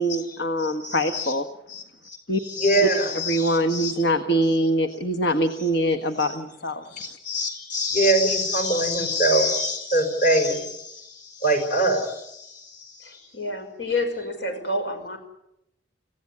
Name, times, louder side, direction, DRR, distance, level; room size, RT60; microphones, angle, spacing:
voice 1, 0.0-1.5 2.3-2.4 2.8-2.9 3.3-7.2, right 1 dB, 65° left, 8 dB, 1.4 m, -24 dB
voice 2, 0.6-1.3 1.7-2.2 2.4-3.9 6.9-13.1, right 1 dB, 45° left, 6 dB, 5.3 m, -24 dB
voice 3, 13.0-15.2, left 2 dB, 80° left, 6 dB, 5.9 m, -29 dB
26.5 x 17.0 x 9.7 m, 0.83 s
head